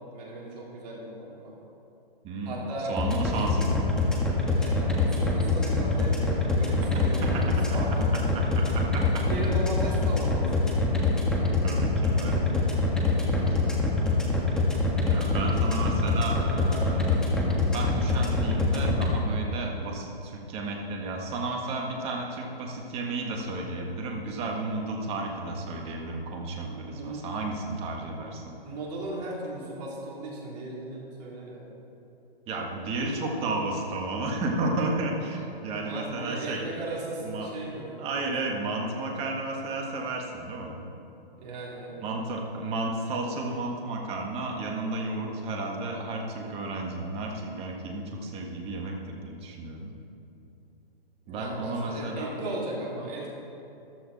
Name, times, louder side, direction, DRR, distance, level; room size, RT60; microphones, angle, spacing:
voice 1, 0.1-1.5 2.5-3.4 4.5-8.5 9.2-10.7 26.8-27.4 28.6-31.7 35.8-38.0 41.4-42.0 51.3-53.3, right 1 dB, 40° right, -5 dB, 3.6 m, -36 dB
voice 2, 2.2-3.9 6.7-9.3 9.9-10.0 11.5-12.9 13.6-13.9 15.1-17.2 17.6-28.5 32.5-36.6 37.2-37.5 38.0-40.8 42.0-49.9 51.3-52.3, right 2 dB, 20° right, 0 dB, 1.8 m, -33 dB
sound 1, 3.0-19.1, left 2 dB, ahead, 1.6 m, -24 dB
14.0 x 13.0 x 4.3 m, 2.9 s
hypercardioid pair, 145°, 30 cm